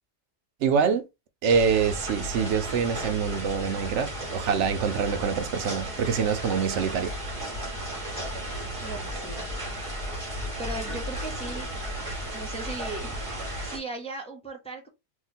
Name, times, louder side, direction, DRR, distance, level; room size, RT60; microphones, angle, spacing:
voice 1, 0.6-1.0 1.4-7.1, right 6 dB, 85° right, 0.9 m, -25 dB
sound 1, 1.5-13.8, right 1 dB, 30° right, 1.4 m, -34 dB
voice 2, 8.8-9.5 10.6-11.7 12.3-14.9, right 2 dB, 5° left, 0.6 m, -38 dB
2.9 x 2.2 x 4.0 m
omnidirectional pair, 1.2 m